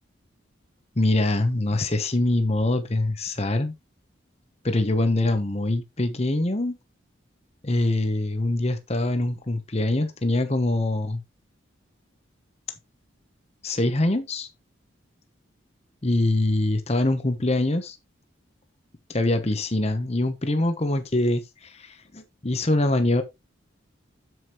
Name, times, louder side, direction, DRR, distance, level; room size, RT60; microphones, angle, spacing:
voice 1, 1.0-3.7 4.6-6.8 7.6-11.2 13.6-14.5 16.0-18.0 19.1-23.2, left 1 dB, 30° left, 1.0 m, -24 dB
7.8 x 7.3 x 3.0 m
head